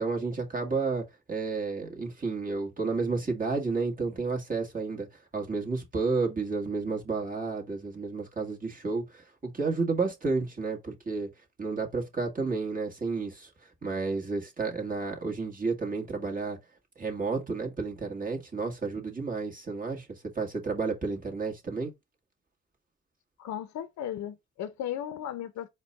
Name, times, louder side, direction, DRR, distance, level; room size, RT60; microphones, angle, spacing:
voice 1, 0.0-5.1 5.3-11.3 11.6-13.5 13.8-16.6 17.0-21.9, right 4 dB, 30° right, 1.4 m, -31 dB
voice 2, 23.4-25.7, left 10 dB, 65° left, 0.6 m, -36 dB
4.4 x 2.2 x 4.0 m
cardioid pair, 90°, 30 cm